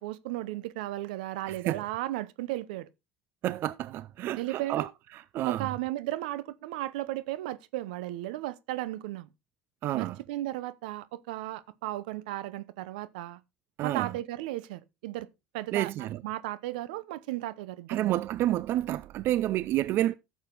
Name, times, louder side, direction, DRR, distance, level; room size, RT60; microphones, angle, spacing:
voice 1, 0.0-2.9 4.4-4.9 5.4-9.3 9.9-13.4 13.8-15.3 15.5-18.2, right 16 dB, 85° right, 0.8 m, -35 dB
voice 2, 1.5-1.8 3.4-4.9 5.1-5.7 9.8-10.2 13.8-14.1 15.7-16.2 17.9-20.1, right 14 dB, 55° right, 0.5 m, -29 dB
12.0 x 7.2 x 3.9 m
supercardioid pair, 100°, 5 cm